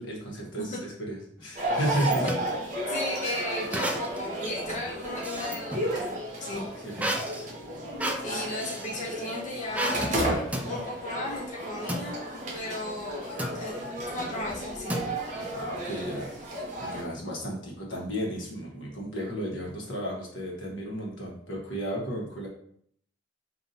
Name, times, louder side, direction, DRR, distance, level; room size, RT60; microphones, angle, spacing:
voice 1, 0.0-2.2 6.8-7.2 8.2-8.4 10.6-10.8 15.5-22.5, right 1 dB, 85° left, -2 dB, 1.2 m, -34 dB
sound 1, 1.4-2.5 3.7-4.3 4.7-5.9 7.0-9.0 9.7-10.2 10.5-10.7 11.9-12.1 13.4-13.6 14.9-15.5, right 1 dB, 10° right, 0.3 m, -32 dB
sound 2, 1.5-17.0, right 1 dB, 40° right, 0.9 m, -33 dB
voice 2, 2.9-6.7 8.2-13.8 14.1-15.0, left 2 dB, 40° left, -3 dB, 0.6 m, -35 dB
5.1 x 2.6 x 2.8 m, 0.63 s
head